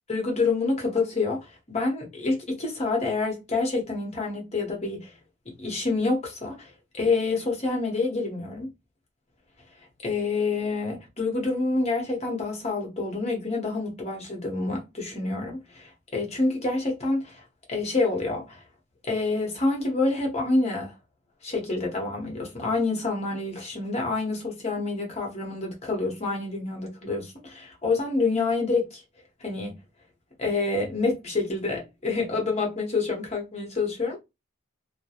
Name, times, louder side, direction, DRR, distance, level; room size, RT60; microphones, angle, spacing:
voice 1, 0.1-5.1 5.6-8.7 10.0-17.4 17.7-18.6 19.0-20.9 21.4-29.0 29.4-29.8 30.4-34.2, left 3 dB, 30° left, 0.8 m, -27 dB
2.3 x 2.1 x 2.8 m
head